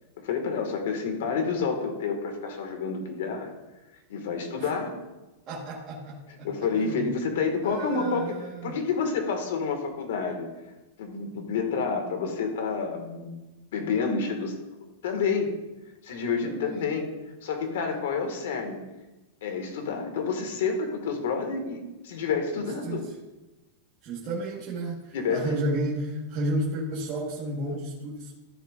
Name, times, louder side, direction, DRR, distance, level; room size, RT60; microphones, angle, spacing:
voice 1, 0.2-3.5 4.1-4.9 6.4-8.3 8.6-10.5 11.0-13.4 13.7-14.5 15.0-15.5 16.0-17.1 17.4-18.8 19.4-23.0 25.1-25.5, left 5 dB, 70° left, 4 dB, 1.9 m, -29 dB
voice 2, 5.5-8.8 16.4-16.8 22.8-23.1 24.0-28.3, right 1 dB, 25° right, -7 dB, 1.5 m, -32 dB
14.0 x 6.9 x 2.6 m, 1.1 s
supercardioid pair, 170°, 0 cm